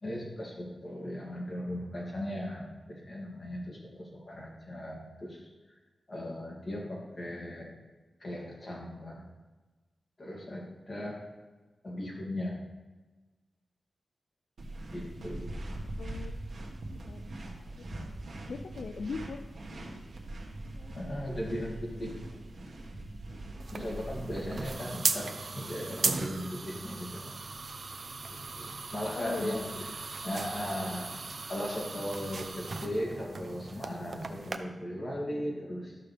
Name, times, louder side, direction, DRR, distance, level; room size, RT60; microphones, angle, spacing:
voice 1, 0.0-5.5 6.1-7.7 8.2-9.2 10.2-11.2 11.8-12.6 14.9-15.5 20.9-22.1 23.7-27.4 28.5-29.6 30.2-31.1 31.5-36.0, left 1 dB, 35° left, -3 dB, 2.6 m, -37 dB
sound 1, 14.6-24.7, right 1 dB, 80° right, 1.4 m, -42 dB
voice 2, 16.0-16.5 16.9-17.9 18.5-19.4 20.8-21.0 29.2-29.8 30.8-31.0, left 4 dB, 75° left, 6 dB, 0.4 m, -41 dB
sound 2, 23.6-34.6, right 4 dB, 55° right, 0.6 m, -37 dB
12.5 x 6.6 x 3.4 m, 1.2 s
wide cardioid pair, 100°, 0 cm